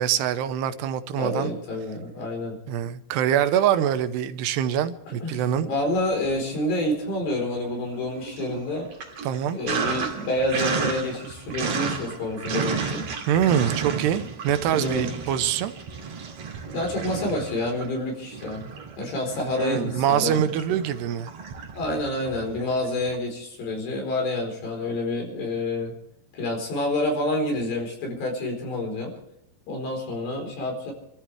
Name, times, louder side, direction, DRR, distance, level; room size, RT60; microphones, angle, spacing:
voice 1, 0.0-1.5 2.7-5.7 9.2-9.6 13.3-15.7 19.6-21.3, right 10 dB, 80° right, 11 dB, 2.9 m, -24 dB
voice 2, 1.2-2.6 5.1-5.4 5.7-8.9 9.5-13.1 14.7-15.1 16.7-18.6 19.0-20.6 21.7-25.9 26.3-29.1 29.7-30.9, left 1 dB, 75° left, 2 dB, 6.5 m, -28 dB
Sink (filling or washing), 5.8-6.7 7.1-23.2, right 5 dB, 50° right, 3.2 m, -33 dB
30.0 x 14.0 x 3.4 m, 0.79 s
omnidirectional pair, 4.8 m